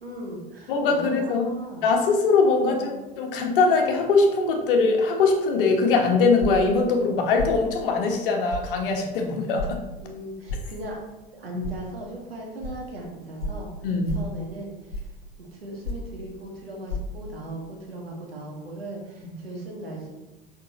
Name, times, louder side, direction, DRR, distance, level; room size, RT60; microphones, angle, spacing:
voice 1, 0.0-1.8 2.6-3.0 10.0-11.0 11.3-13.7 14.1-15.0 15.4-20.1, right 1 dB, 80° right, -1 dB, 1.8 m, -38 dB
voice 2, 0.7-1.5 1.8-9.8 13.8-14.2, left 4 dB, 65° left, 3 dB, 1.3 m, -22 dB
sound 1, 6.4-6.7 7.4-7.6 8.5-8.7 9.6-9.7 10.5-10.7 11.6-11.8 12.6-12.7 13.4-13.6 14.0-14.3 14.9-15.2 15.8-16.1 16.9-17.0, left 2 dB, 80° left, 0.9 m, -31 dB
6.7 x 5.7 x 3.0 m, 1.0 s
figure-of-eight pair, 80°, 29 cm